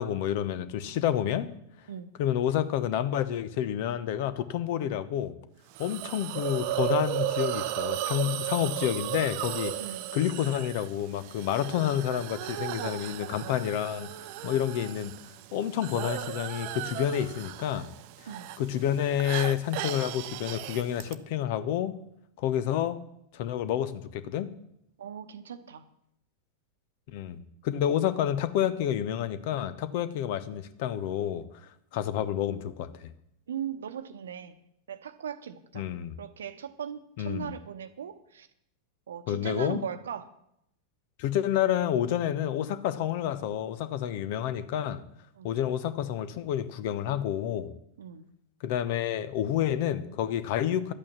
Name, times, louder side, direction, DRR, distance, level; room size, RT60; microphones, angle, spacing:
voice 1, 0.0-1.5 2.2-5.3 5.8-9.7 10.1-14.1 14.4-15.1 15.5-17.9 18.6-22.0 22.4-23.0 23.3-24.5 27.1-27.4 27.6-31.4 31.9-33.1 35.7-36.1 37.2-37.5 39.3-39.8 41.2-45.0 45.4-47.7 48.6-50.9, left 10 dB, 50° left, 14 dB, 0.9 m, -29 dB
Hiss, 5.8-21.1, right 14 dB, 45° right, 0.7 m, -35 dB
voice 2, 25.0-25.8 33.5-34.6 34.9-35.9 36.2-38.5 39.1-40.3 45.4-45.6 48.0-48.3, right 8 dB, 65° right, 11 dB, 1.0 m, -38 dB
12.0 x 8.8 x 7.4 m, 0.76 s
figure-of-eight pair, 90°, 0 cm